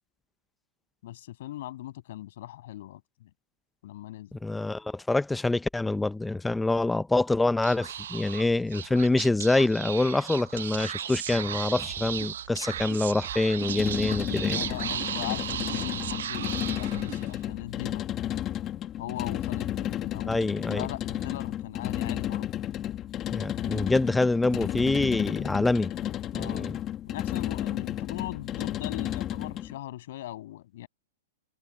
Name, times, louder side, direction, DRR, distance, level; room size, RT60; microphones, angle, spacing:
voice 1, 1.0-3.3 3.8-4.4 14.5-18.1 19.0-22.5 26.3-26.8 27.0-30.9, left 14 dB, 55° left, 6.4 m, -39 dB
voice 2, 4.3-14.6 20.3-20.8 23.3-25.9 26.3-26.8, left 2 dB, 5° left, 0.5 m, -26 dB
Speech / Whispering, 7.6-17.4, right 10 dB, 80° right, 0.5 m, -36 dB
sound 1, 11.9-17.3, right 20 dB, 35° right, 1.0 m, -45 dB
sound 2, 13.6-29.7, left 11 dB, 20° left, 1.4 m, -32 dB
supercardioid pair, 160°, 0 cm